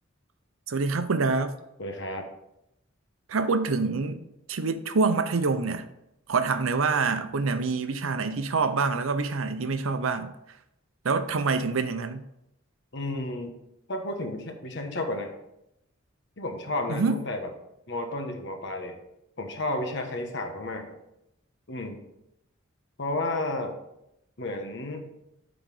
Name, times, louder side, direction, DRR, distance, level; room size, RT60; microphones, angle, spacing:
voice 1, 0.7-1.6 3.3-4.2 4.5-5.9 6.3-10.3 11.0-12.2 16.9-17.2, right 4 dB, 80° right, 0.6 m, -26 dB
voice 2, 1.8-2.3 12.9-13.5 13.9-15.3 16.4-17.5 17.9-19.0 19.4-21.0 21.7-22.0 23.0-23.7 24.4-25.1, left 2 dB, 60° left, 1.1 m, -32 dB
8.9 x 3.9 x 4.8 m
head